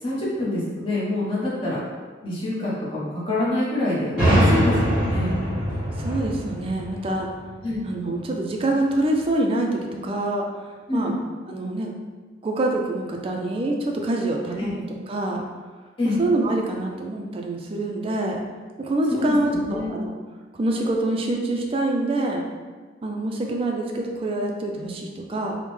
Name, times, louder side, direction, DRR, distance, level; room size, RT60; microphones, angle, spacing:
voice 1, 0.0-1.8 2.2-4.7 5.1-5.4 7.6-7.8 10.9-11.1 14.6-14.7 16.0-16.2 19.1-19.9, left 2 dB, 30° left, -8 dB, 0.9 m, -25 dB
sound 1, 4.2-7.8, right 1 dB, 5° right, 1.5 m, -23 dB
voice 2, 5.9-7.3 7.8-10.5 10.9-11.1 11.5-12.0 12.4-15.4 16.2-18.4 18.8-20.1 20.6-22.4 23.0-25.6, right 2 dB, 30° right, 1 dB, 0.3 m, -25 dB
3.5 x 2.1 x 3.1 m, 1.4 s
head